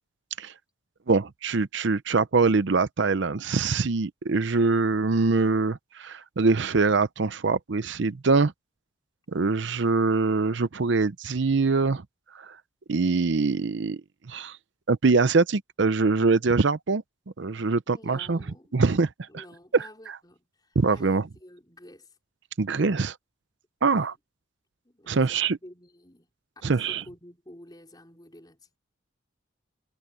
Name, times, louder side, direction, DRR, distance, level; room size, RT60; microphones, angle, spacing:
voice 1, 1.1-8.5 9.3-12.0 12.3-12.6 12.9-14.0 14.3-14.6 14.9-17.0 17.4-18.4 18.7-19.1 19.7-19.9 20.8-21.2 22.6-23.2 23.8-24.1 25.1-25.6 26.6-27.0, right 4 dB, 60° right, 0.6 m, -23 dB
voice 2, 17.9-18.8 19.3-22.2 23.9-24.2 24.8-26.3 26.6-28.8, left 1 dB, 20° left, 4.7 m, -50 dB
head